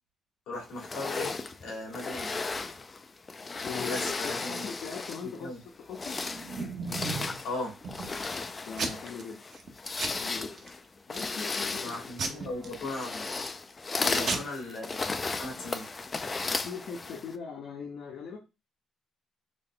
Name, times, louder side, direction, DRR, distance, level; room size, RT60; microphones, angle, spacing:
voice 1, 0.5-1.3 1.6-2.4 3.9-4.7 5.4-5.6 7.4-7.8 11.8-13.3 14.0-15.9, left 2 dB, 90° left, -1 dB, 1.8 m, -37 dB
sound 1, 0.8-5.4 5.8-17.4, left 3 dB, 30° left, 0.4 m, -35 dB
voice 2, 3.6-6.2 8.6-9.4 10.2-10.5 11.1-12.8 14.0-14.8 16.6-18.4, left 6 dB, 70° left, 1 dB, 0.7 m, -41 dB
Packing tape duct tape / Tearing, 6.0-7.4 7.8-8.3 8.8-9.2 9.5-9.7 10.0-10.7 11.1-11.5 12.2-13.5 13.9-14.0 14.2-14.4, right 4 dB, 55° right, 0.8 m, -35 dB
3.6 x 2.2 x 3.8 m, 0.26 s
cardioid pair, 90°, 0 cm